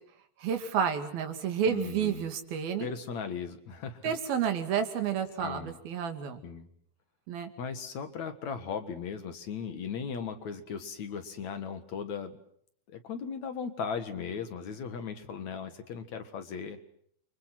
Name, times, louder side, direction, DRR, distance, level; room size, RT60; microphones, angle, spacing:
voice 1, 0.4-2.9 4.0-6.4 7.3-7.5, right 7 dB, 80° right, 7 dB, 4.2 m, -30 dB
voice 2, 1.7-2.3 2.8-4.1 5.4-5.8 6.4-6.7 7.6-12.4 12.9-16.8, left 6 dB, 55° left, 8 dB, 2.7 m, -37 dB
30.0 x 25.0 x 6.0 m, 0.65 s
omnidirectional pair, 4.2 m